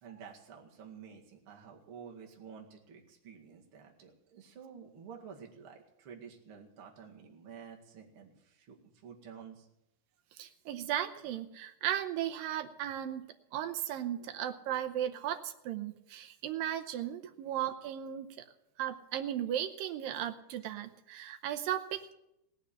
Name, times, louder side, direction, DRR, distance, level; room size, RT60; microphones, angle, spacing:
voice 1, 0.0-9.7 14.2-14.3, right 7 dB, 40° right, 0 dB, 2.3 m, -51 dB
voice 2, 10.4-13.2 13.5-18.3 18.8-22.1, right 11 dB, 75° right, 6 dB, 2.3 m, -36 dB
17.5 x 7.1 x 10.0 m, 0.84 s
omnidirectional pair, 4.7 m